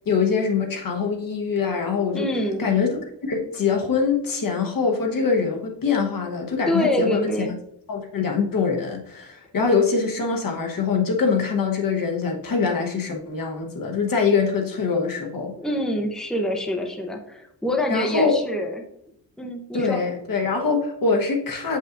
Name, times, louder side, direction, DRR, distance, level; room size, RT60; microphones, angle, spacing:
voice 1, 0.1-2.3 2.6-2.9 3.2-7.6 7.9-15.5 17.9-18.4 19.7-21.8, left 5 dB, 50° left, 2 dB, 1.2 m, -23 dB
voice 2, 2.1-2.7 6.7-7.6 15.6-18.8 19.4-20.0, left 1 dB, ahead, 2 dB, 0.7 m, -25 dB
7.8 x 5.5 x 2.5 m, 0.74 s
wide cardioid pair, 155°, 43 cm